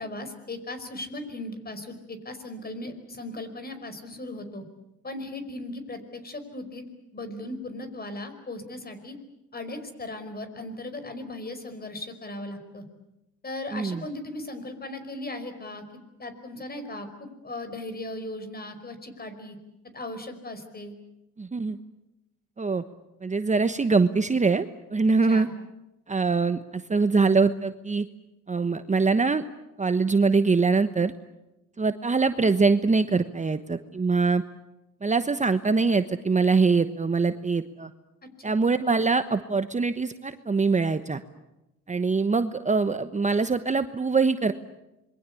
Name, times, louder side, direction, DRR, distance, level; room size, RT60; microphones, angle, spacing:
voice 1, 0.0-4.6 5.0-6.8 7.1-9.2 9.5-12.9 13.4-19.6 19.9-20.9 25.3-25.5 38.2-38.5, left 2 dB, 30° left, 9 dB, 5.2 m, -37 dB
voice 2, 13.7-14.0 21.4-21.8 22.6-22.8 23.2-25.5 26.1-28.1 28.5-29.4 29.8-31.1 31.8-34.4 35.0-37.9 38.4-41.2 41.9-44.5, right 4 dB, 25° right, 10 dB, 1.1 m, -23 dB
27.0 x 23.0 x 8.4 m, 0.93 s
cardioid pair, 90°, 30 cm